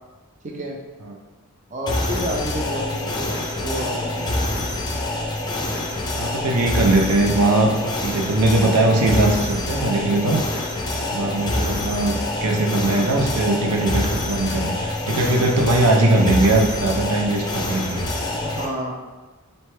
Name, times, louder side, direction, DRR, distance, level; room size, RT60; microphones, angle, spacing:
voice 1, 0.4-0.8 1.7-4.5 18.4-18.9, equal, 35° right, -1 dB, 0.6 m, -30 dB
sound 1, 1.9-18.7, left 1 dB, 20° left, 0.5 m, -26 dB
voice 2, 6.2-10.4 11.1-18.0, right 2 dB, 85° right, 2 dB, 0.6 m, -20 dB
4.2 x 3.2 x 3.2 m, 1.2 s
head